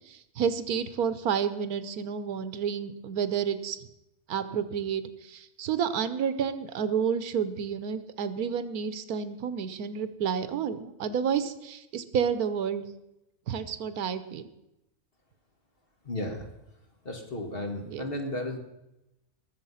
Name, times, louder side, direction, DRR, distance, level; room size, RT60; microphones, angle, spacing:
voice 1, 0.1-3.8 4.3-12.8 13.5-14.5 17.9-18.1, right 7 dB, 85° right, 13 dB, 1.4 m, -30 dB
voice 2, 16.1-16.4 17.1-18.6, left 1 dB, 40° left, 3 dB, 2.1 m, -34 dB
21.0 x 7.3 x 5.6 m, 0.90 s
omnidirectional pair, 1.5 m